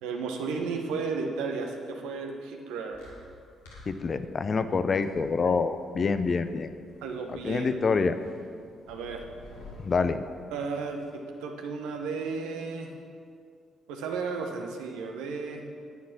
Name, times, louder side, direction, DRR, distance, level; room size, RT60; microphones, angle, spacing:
voice 1, 0.0-3.1 7.0-7.8 8.9-9.2 10.5-12.9 13.9-15.7, right 4 dB, 70° right, 3 dB, 1.2 m, -34 dB
sound 1, 2.9-11.1, left 2 dB, 80° left, 2.3 m, -51 dB
voice 2, 3.9-6.7 7.4-8.1 9.8-10.2, left 4 dB, 45° left, 11 dB, 0.7 m, -26 dB
9.6 x 9.5 x 6.1 m, 2.3 s
hypercardioid pair, 40°, 0 cm